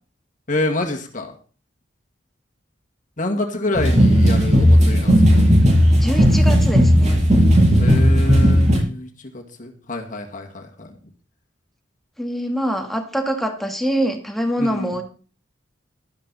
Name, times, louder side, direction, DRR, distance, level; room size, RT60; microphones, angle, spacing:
voice 1, 0.5-1.3 3.2-5.4 7.8-9.1 9.3-10.9 14.6-14.9, left 2 dB, 40° left, 3 dB, 2.0 m, -27 dB
sound 1, 3.7-8.8, equal, 40° right, 6.2 m, -14 dB
voice 2, 6.0-7.3 12.2-15.0, equal, ahead, 3 dB, 1.9 m, -24 dB
12.5 x 12.5 x 4.1 m, 0.39 s
head